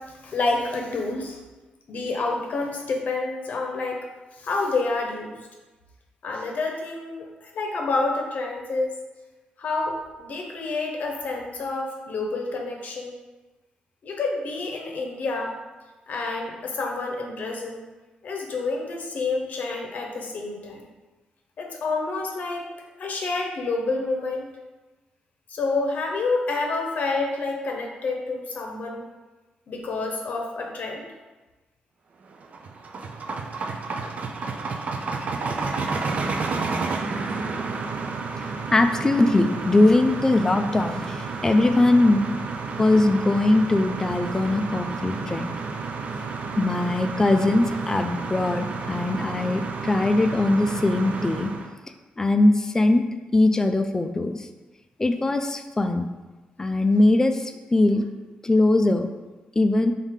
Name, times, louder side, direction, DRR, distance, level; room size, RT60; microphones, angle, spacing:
voice 1, 0.0-1.4 1.9-4.0 4.3-5.4 6.2-8.9 9.6-13.2 14.0-15.5 16.1-17.8 18.2-20.8 21.6-22.6 23.0-24.5 25.5-29.1 29.7-31.1, left 3 dB, 60° left, 1 dB, 0.8 m, -28 dB
sound 1, 32.3-51.7, right 4 dB, 50° right, 0.4 m, -31 dB
voice 2, 38.7-42.3 42.8-45.5 46.6-51.5 52.2-53.0 53.3-54.5 55.0-56.1 56.6-58.1 58.4-59.1 59.6-59.9, left 2 dB, 20° left, 7 dB, 0.3 m, -21 dB
4.7 x 2.7 x 3.6 m, 1.2 s
cardioid pair, 105°, 3 cm